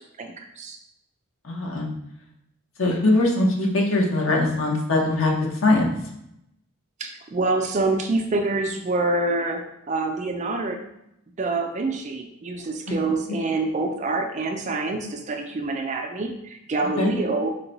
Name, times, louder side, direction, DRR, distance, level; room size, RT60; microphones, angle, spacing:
voice 1, 0.2-0.8 7.0-10.8 11.4-17.5, right 2 dB, 30° right, 4 dB, 0.3 m, -26 dB
voice 2, 1.4-1.9 2.8-5.3 5.6-5.9 17.0-17.1, left 2 dB, 60° left, -1 dB, 0.9 m, -21 dB
4.6 x 2.2 x 3.9 m, 0.81 s
head